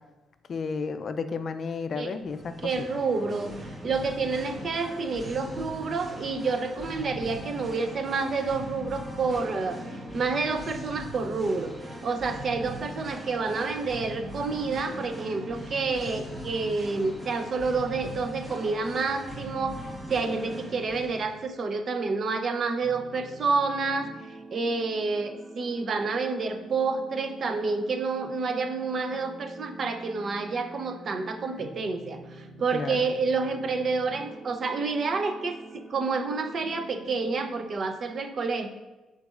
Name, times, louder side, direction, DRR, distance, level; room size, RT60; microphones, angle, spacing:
voice 1, 0.5-2.9 32.7-33.1, left 5 dB, 50° left, 10 dB, 0.4 m, -32 dB
Singing, 2.2-21.4, equal, 25° right, 1.1 m, -40 dB
voice 2, 2.6-3.5 3.8-9.8 10.1-11.7 12.0-19.8 20.1-24.1 24.5-38.7, right 4 dB, 50° right, 7 dB, 0.6 m, -29 dB
sound 1, 22.8-37.8, right 2 dB, 5° left, 1.8 m, -46 dB
10.5 x 4.0 x 2.4 m, 1.1 s
cardioid pair, 90°, 0 cm